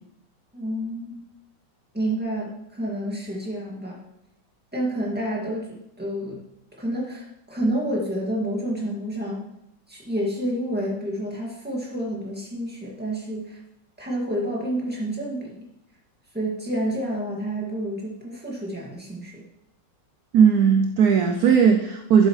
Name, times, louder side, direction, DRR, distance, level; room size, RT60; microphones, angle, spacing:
voice 1, 0.5-1.2 1.9-4.0 4.7-6.4 6.8-9.5 9.9-13.6 14.0-15.7 16.3-19.4, right 1 dB, 5° right, -3 dB, 2.0 m, -29 dB
voice 2, 20.3-22.3, right 7 dB, 65° right, 5 dB, 1.0 m, -17 dB
12.0 x 7.5 x 3.2 m, 0.80 s
omnidirectional pair, 2.0 m